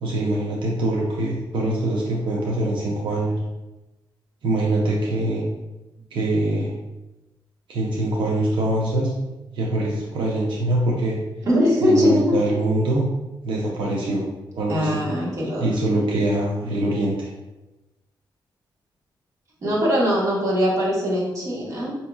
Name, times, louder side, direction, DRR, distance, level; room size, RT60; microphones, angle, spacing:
voice 1, 0.0-3.4 4.4-5.5 6.1-6.7 7.7-9.1 9.5-11.2 11.8-13.1 13.4-14.2 14.5-15.0 15.6-17.3, right 1 dB, 85° right, -3 dB, 0.6 m, -23 dB
voice 2, 11.4-12.6 14.7-15.7 19.6-22.0, equal, 40° right, -6 dB, 1.3 m, -21 dB
5.3 x 2.8 x 2.3 m, 1.0 s
wide cardioid pair, 135°, 8 cm